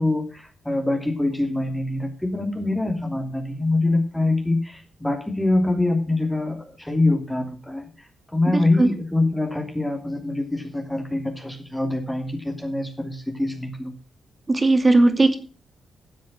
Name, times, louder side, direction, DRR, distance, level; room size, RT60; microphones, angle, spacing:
voice 1, 0.0-7.9 8.3-13.9, left 2 dB, 10° left, 2 dB, 3.0 m, -24 dB
voice 2, 8.5-8.9 14.5-15.4, right 2 dB, 30° right, 7 dB, 2.4 m, -17 dB
12.5 x 7.5 x 6.0 m, 0.37 s
cardioid pair, 65°, 0 cm